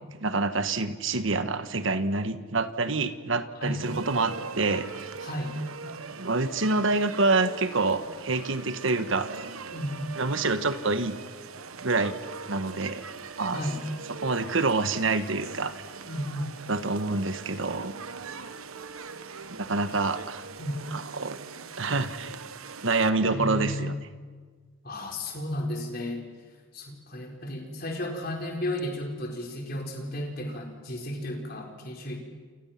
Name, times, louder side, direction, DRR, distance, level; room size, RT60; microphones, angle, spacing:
voice 1, 0.2-5.1 6.2-9.3 10.2-11.2 11.8-12.1 12.5-13.0 13.4-13.6 14.2-15.8 16.7-17.9 19.5-20.4 20.9-21.4 21.8-22.3 22.8-23.9, right 3 dB, 70° right, 10 dB, 1.4 m, -27 dB
sound 1, 3.8-23.1, right 5 dB, 85° right, 1.2 m, -41 dB
voice 2, 5.2-5.6 9.7-10.1 13.5-13.9 16.1-16.5 20.6-20.8 23.2-24.0 24.8-26.3 26.7-32.2, left 1 dB, 45° left, 2 dB, 4.4 m, -33 dB
28.5 x 28.5 x 5.9 m, 1.5 s
head